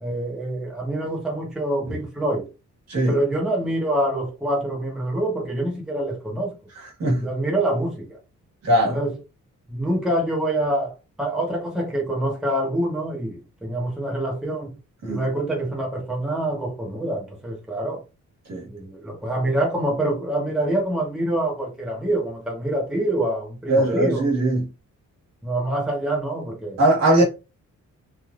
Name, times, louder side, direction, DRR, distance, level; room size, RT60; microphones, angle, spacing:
voice 1, 0.0-2.5 3.1-6.6 7.2-8.2 8.9-9.2 9.7-14.7 15.1-18.0 18.6-24.4 25.4-26.8 27.2-27.3, right 1 dB, ahead, 0.9 m, -26 dB
voice 2, 8.6-9.0 15.0-15.2 18.5-18.6 23.7-24.6 26.8-27.2, right 1 dB, 60° right, 1.4 m, -19 dB
3.3 x 2.5 x 2.4 m
cardioid pair, 120°, 30 cm